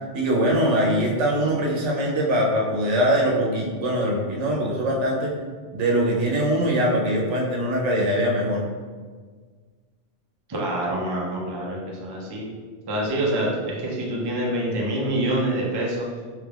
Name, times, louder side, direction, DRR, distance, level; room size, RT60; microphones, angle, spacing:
voice 1, 0.1-5.3 5.7-8.6, equal, 80° right, -2 dB, 1.0 m, -22 dB
voice 2, 10.5-12.5 12.9-16.1, right 1 dB, 35° right, -3 dB, 0.4 m, -26 dB
3.4 x 3.3 x 2.3 m, 1.5 s
omnidirectional pair, 1.2 m